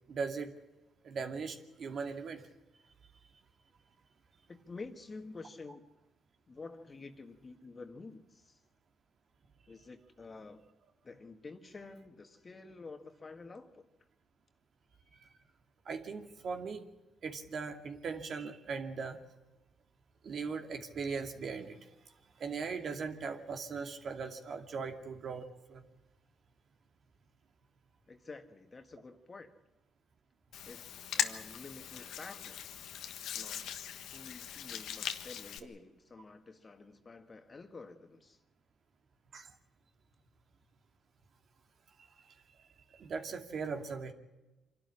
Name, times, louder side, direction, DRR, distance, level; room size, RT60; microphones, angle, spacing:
voice 1, 0.1-0.5 1.0-2.5 15.2-15.3 15.8-16.8 17.2-19.2 20.2-21.9 22.4-25.8 39.3-39.5 42.0-42.3 42.9-44.1, right 5 dB, 55° right, 5 dB, 2.5 m, -39 dB
voice 2, 4.5-5.8 6.5-8.6 9.7-10.6 11.0-13.9 28.1-29.5 30.7-32.9 33.3-33.7 34.1-38.4, left 3 dB, 30° left, 7 dB, 1.9 m, -49 dB
Hands, 30.5-35.6, left 9 dB, 80° left, 1.5 m, -40 dB
25.5 x 12.5 x 10.0 m, 1.1 s
cardioid pair, 90°, 0 cm